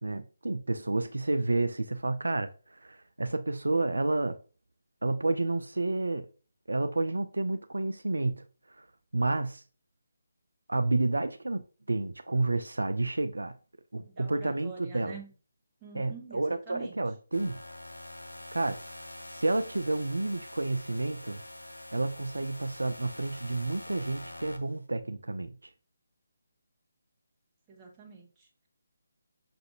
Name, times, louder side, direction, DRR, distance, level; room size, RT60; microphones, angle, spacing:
voice 1, 0.0-4.4 5.0-6.3 6.7-8.9 9.1-9.6 10.7-11.6 11.9-13.6 13.9-15.2 15.9-17.6 18.5-18.8 19.3-21.4 21.9-25.7, right 2 dB, 75° right, 0.3 m, -30 dB
voice 2, 14.0-15.3 15.8-16.9 27.7-28.7, right 5 dB, 15° right, 1.0 m, -47 dB
sound 1, 17.3-24.8, left 1 dB, 90° left, 0.6 m, -45 dB
6.1 x 2.6 x 2.7 m
figure-of-eight pair, 150°, 0 cm